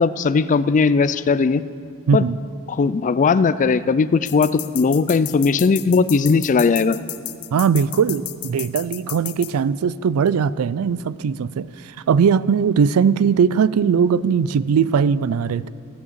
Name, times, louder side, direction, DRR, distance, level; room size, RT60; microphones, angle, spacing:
voice 1, 0.0-1.6 2.1-2.2 2.7-7.0, left 4 dB, 35° left, 15 dB, 0.3 m, -18 dB
voice 2, 2.1-2.4 7.5-15.7, right 6 dB, 75° right, 19 dB, 0.4 m, -19 dB
sound 1, 4.3-9.5, left 16 dB, 75° left, 0.6 m, -32 dB
13.5 x 8.3 x 7.4 m, 2.3 s
head